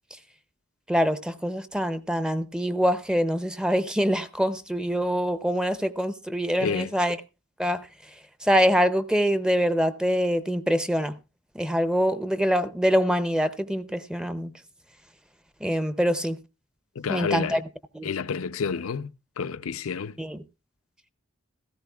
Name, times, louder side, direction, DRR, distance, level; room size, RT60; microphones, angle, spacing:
voice 1, 0.9-7.2 7.6-7.8 8.4-11.1 11.6-14.5 15.6-16.4 17.1-17.6 17.9-18.1 20.2-20.4, equal, 5° right, 0.5 m, -24 dB
voice 2, 6.6-7.0 17.0-17.6 18.0-19.1 19.4-20.2, left 6 dB, 85° left, 0.5 m, -29 dB
16.5 x 14.0 x 2.3 m
head